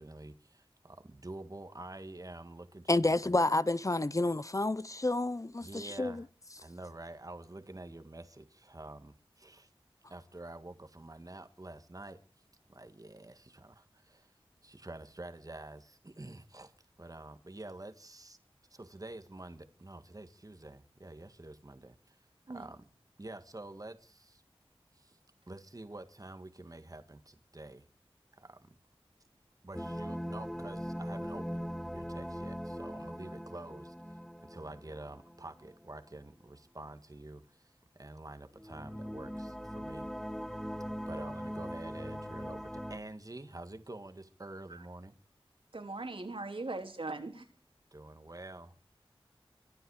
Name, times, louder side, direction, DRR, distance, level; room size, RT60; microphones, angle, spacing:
voice 1, 0.0-3.4 5.6-6.3 6.6-9.7 10.1-12.2 12.7-14.3 14.6-16.7 17.0-18.4 18.7-22.2 22.5-22.9 23.2-24.4 24.9-25.2 25.5-27.9 28.3-28.8 29.6-37.6 38.0-40.1 41.1-45.1 47.9-48.8, right 2 dB, 40° right, 1.7 m, -48 dB
voice 2, 2.9-6.2, left 2 dB, 35° left, 0.7 m, -29 dB
sound 1, 29.7-35.8 38.6-43.0, equal, 5° left, 1.7 m, -41 dB
voice 3, 45.7-47.5, right 2 dB, 70° right, 3.3 m, -40 dB
24.5 x 11.5 x 4.9 m
wide cardioid pair, 55°, 10 cm